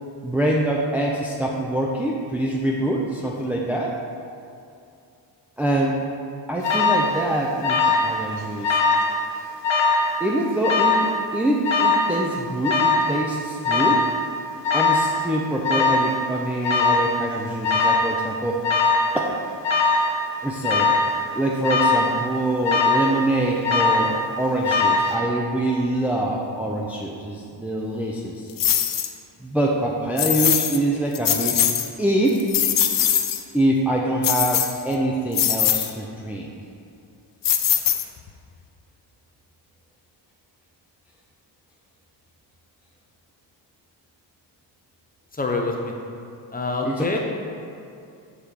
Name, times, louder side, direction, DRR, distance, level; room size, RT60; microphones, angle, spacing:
voice 1, 0.2-3.9 5.6-6.0 6.5-8.8 10.2-14.0 14.7-18.6 19.1-19.4 20.4-21.0 21.3-28.5 29.4-31.6 32.0-32.6 33.5-36.5 46.9-47.0, right 1 dB, 5° right, -3 dB, 0.6 m, -24 dB
Alarm, 6.6-7.1 7.6-8.1 8.4-9.1 9.6-10.1 10.6-11.1 11.6-12.1 12.6-13.1 13.6-14.1 14.6-15.1 15.6-16.1 16.6-17.1 17.6-18.1 18.6-19.1 19.6-20.1 20.6-21.1 21.6-22.1 22.6-23.1 23.6-24.1 24.6-25.1, left 4 dB, 80° left, 1.3 m, -20 dB
sound 1, 28.6-29.1 30.2-30.8 31.1-31.9 32.3-33.4 34.2-34.9 35.3-35.9 37.4-38.3, left 9 dB, 50° left, 0.6 m, -21 dB
voice 2, 45.3-45.9 46.5-47.2, left 3 dB, 20° left, 1 dB, 0.9 m, -25 dB
7.2 x 4.4 x 6.6 m, 2.5 s
cardioid pair, 130°, 43 cm